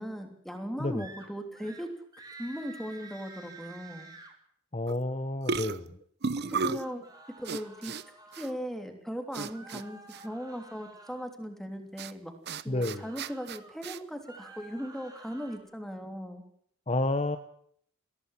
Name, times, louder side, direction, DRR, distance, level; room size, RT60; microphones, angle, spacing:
voice 1, 0.0-1.9 2.4-4.1 6.4-7.0 7.4-12.3 12.6-16.4, equal, ahead, 5 dB, 3.2 m, -38 dB
sound 1, 1.0-1.3 1.5-1.9 2.1-4.3 6.4-8.6 9.5-11.3 12.7-13.7 14.1-15.6, right 3 dB, 15° right, 3.8 m, -50 dB
voice 2, 4.7-6.0 12.7-13.0 16.9-17.4, left 2 dB, 30° left, 8 dB, 1.1 m, -30 dB
sound 2, 4.9-5.1 5.4-6.9 7.4-8.0 8.3-8.5 9.3-9.8 10.1-10.2 12.0-12.1 12.5-14.0, right 4 dB, 50° right, 0.8 m, -34 dB
22.5 x 16.5 x 7.4 m, 0.65 s
head